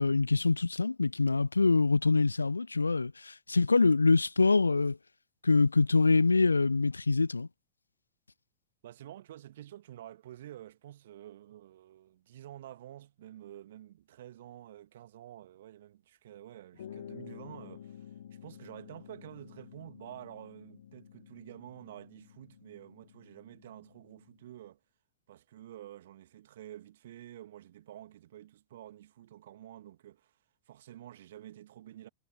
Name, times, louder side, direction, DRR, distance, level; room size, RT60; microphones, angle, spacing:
voice 1, 0.0-5.0 5.4-7.5, left 3 dB, 80° left, 0.4 m, -25 dB
voice 2, 8.8-24.8 25.3-30.4 30.7-32.1, right 12 dB, 60° right, 2.3 m, -49 dB
sound 1, 16.7-24.5, left 10 dB, 65° left, 2.6 m, -51 dB
figure-of-eight pair, 90°, 0 cm